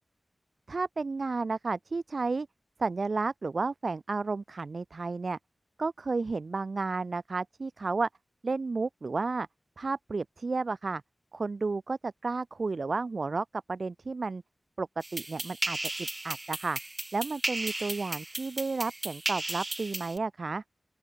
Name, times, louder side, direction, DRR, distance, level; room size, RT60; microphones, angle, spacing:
voice 1, 0.7-2.5 2.8-5.4 5.8-8.1 8.4-9.5 9.8-11.0 11.3-14.4 14.8-16.8 17.1-20.6, right 3 dB, 60° right, 2.4 m, -32 dB
sound 1, 15.0-20.2, right 2 dB, 25° right, 4.3 m, -35 dB
open air
wide cardioid pair, 95°, 0 cm